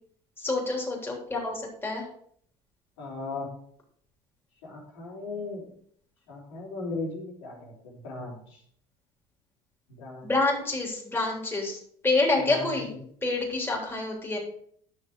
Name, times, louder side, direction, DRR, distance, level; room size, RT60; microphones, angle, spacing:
voice 1, 0.4-2.0 10.2-12.9 13.2-14.4, left 2 dB, 15° left, -1 dB, 3.4 m, -27 dB
voice 2, 3.0-3.5 4.6-5.6 6.3-8.6 9.9-10.3 12.4-13.0, left 3 dB, 90° left, -3 dB, 4.1 m, -37 dB
11.0 x 6.4 x 4.7 m, 0.62 s
supercardioid pair, 95°, 15 cm